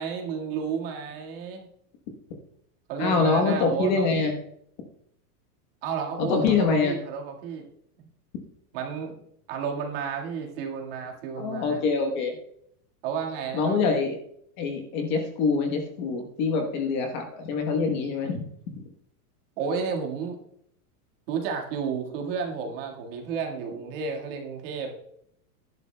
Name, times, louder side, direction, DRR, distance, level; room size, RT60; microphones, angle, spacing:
voice 1, 0.0-1.7 2.9-4.1 5.8-7.7 8.0-8.1 8.7-9.2 9.5-11.8 13.0-14.0 19.6-20.4 21.3-24.9, right 6 dB, 35° right, 1 dB, 1.8 m, -32 dB
voice 2, 3.0-4.3 6.2-6.9 11.4-12.3 13.5-14.2 14.6-18.8, left 4 dB, 30° left, 3 dB, 1.1 m, -25 dB
17.0 x 11.0 x 2.2 m, 0.71 s
supercardioid pair, 180°, 45 cm